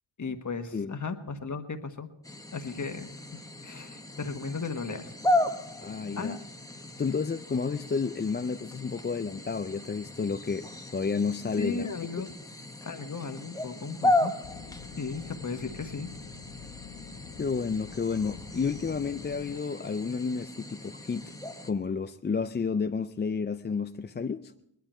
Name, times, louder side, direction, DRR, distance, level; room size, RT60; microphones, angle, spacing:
voice 1, 0.2-2.1 2.5-5.1 6.2-6.3 11.6-12.3 12.8-14.3 15.0-16.1, left 4 dB, 40° left, 1.4 m, -35 dB
sound 1, 2.2-21.7, left 1 dB, 10° left, 1.0 m, -35 dB
voice 2, 5.8-6.4 7.0-11.9 17.4-21.3 21.6-24.5, left 5 dB, 25° left, 0.4 m, -31 dB
sound 2, 14.4-19.6, left 10 dB, 65° left, 0.6 m, -47 dB
20.0 x 11.5 x 4.4 m
cardioid pair, 80°, 46 cm